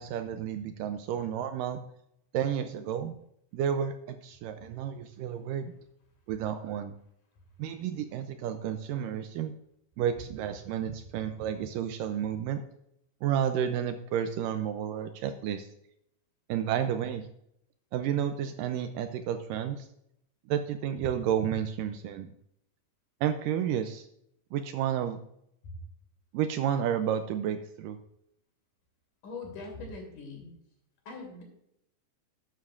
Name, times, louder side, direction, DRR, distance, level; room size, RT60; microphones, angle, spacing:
voice 1, 0.0-1.8 2.3-3.1 3.5-5.7 6.3-6.9 7.6-9.5 10.0-12.6 13.2-15.7 16.5-17.3 17.9-19.9 20.5-22.3 23.2-24.1 24.5-25.2 26.3-28.0, right 9 dB, 80° right, 8 dB, 2.0 m, -31 dB
voice 2, 29.2-30.5 31.1-31.4, left 3 dB, 60° left, 1 dB, 4.1 m, -41 dB
12.5 x 9.6 x 2.5 m, 0.76 s
omnidirectional pair, 4.2 m